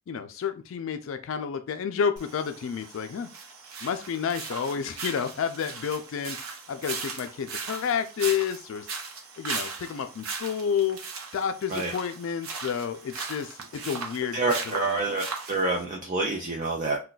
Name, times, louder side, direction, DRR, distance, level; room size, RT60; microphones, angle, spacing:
voice 1, 0.1-3.3 3.8-8.9 9.4-11.0 11.3-15.0, left 7 dB, 65° left, 8 dB, 0.3 m, -30 dB
sound 1, 2.2-15.8, right 5 dB, 80° right, 0.7 m, -38 dB
voice 2, 14.3-17.0, right 3 dB, 40° right, -1 dB, 0.5 m, -27 dB
2.3 x 2.2 x 3.8 m, 0.33 s
head